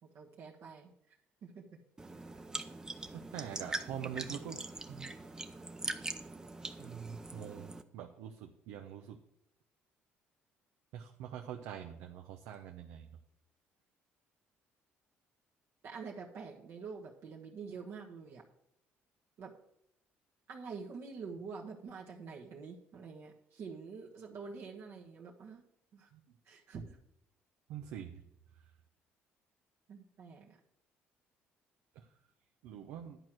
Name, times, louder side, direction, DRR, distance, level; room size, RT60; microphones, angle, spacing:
voice 1, 0.0-1.2 1.4-1.8 15.8-18.4 19.4-19.5 20.5-25.6 25.9-26.1 26.4-27.0 29.9-30.6, right 5 dB, 65° right, -2 dB, 1.5 m, -47 dB
sound 1, 2.0-7.8, right 2 dB, 15° right, 0.7 m, -42 dB
voice 2, 3.1-4.6 4.9-5.1 6.8-9.2 10.9-13.1 26.1-26.2 27.7-28.2 32.0-32.1 32.6-33.2, right 9 dB, 85° right, 4 dB, 0.8 m, -44 dB
11.0 x 4.6 x 7.7 m, 0.79 s
cardioid pair, 95°, 4 cm